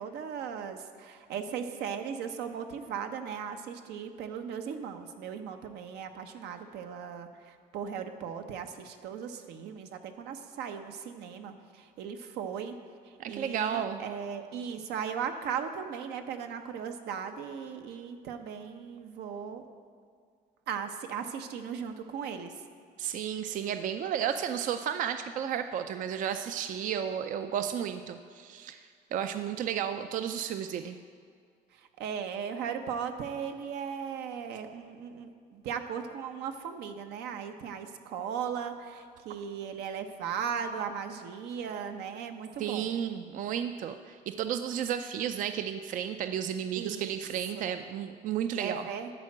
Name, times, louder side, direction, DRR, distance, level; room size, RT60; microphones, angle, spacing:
voice 1, 0.0-12.8 13.0-19.6 20.7-22.5 31.7-42.9 46.7-47.2 47.5-47.7 48.6-49.1, right 7 dB, 80° right, 6 dB, 0.8 m, -37 dB
voice 2, 13.2-14.0 23.0-28.8 29.1-31.0 42.6-48.9, right 9 dB, 50° right, 8 dB, 0.4 m, -33 dB
11.0 x 4.4 x 7.5 m, 2.2 s
cardioid pair, 110°, 17 cm